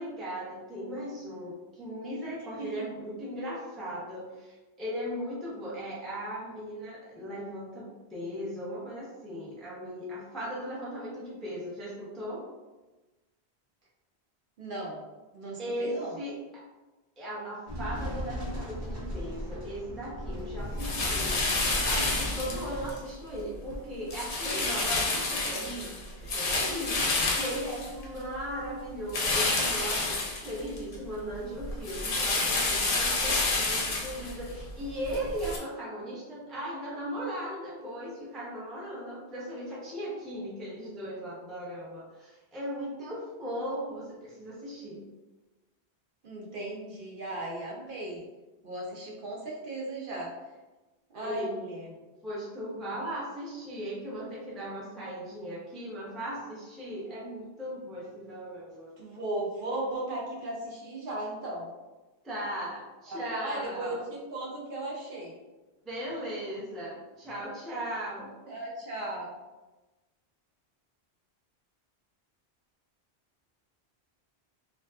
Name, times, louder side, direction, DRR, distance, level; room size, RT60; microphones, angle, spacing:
voice 1, 0.0-12.4 15.6-16.3 17.2-21.4 21.8-25.9 26.2-45.0 51.2-51.5 52.2-58.9 62.2-64.1 65.8-68.3, equal, ahead, -6 dB, 0.4 m, -37 dB
voice 2, 14.6-15.1 15.3-16.2 46.2-48.3 48.6-50.3 51.1-51.9 59.0-61.7 63.1-65.4 68.5-69.3, right 1 dB, 60° right, -4 dB, 0.7 m, -36 dB
sound 1, 17.7-22.9, equal, 25° right, 0.7 m, -36 dB
sound 2, 20.8-23.0 23.4-23.8 24.1-28.4 29.1-31.0 31.3-35.6, left 3 dB, 60° left, 0.7 m, -29 dB
2.6 x 2.3 x 2.2 m, 1.1 s
omnidirectional pair, 1.1 m